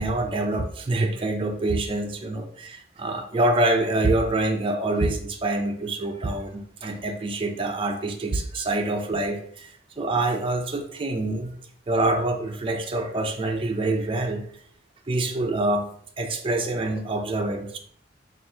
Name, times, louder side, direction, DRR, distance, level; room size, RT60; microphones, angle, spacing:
voice 1, 0.0-11.6 11.9-14.5 15.1-15.9 16.2-17.8, right 2 dB, 25° right, 3 dB, 0.4 m, -26 dB
3.3 x 2.4 x 4.2 m, 0.62 s
head